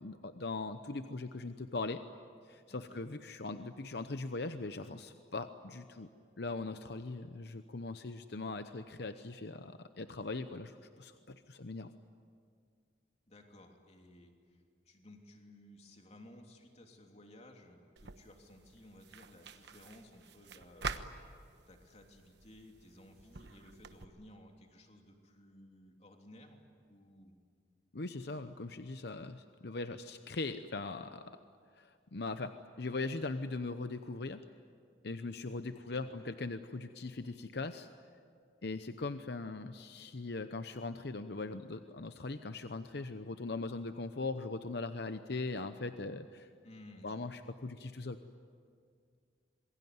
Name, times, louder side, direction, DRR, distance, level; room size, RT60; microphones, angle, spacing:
voice 1, 0.0-2.0 2.5-6.1 6.4-11.9 27.9-31.2 31.8-34.4 35.0-37.9 38.6-46.5 47.0-48.2, left 3 dB, 65° left, 9 dB, 0.9 m, -40 dB
voice 2, 2.7-3.0 13.3-21.0 21.7-27.3 35.7-36.3 46.6-47.3, left 1 dB, 35° left, 2 dB, 3.2 m, -57 dB
sound 1, 18.0-24.0, right 5 dB, 65° right, 1.2 m, -47 dB
27.0 x 22.0 x 9.6 m, 2.1 s
head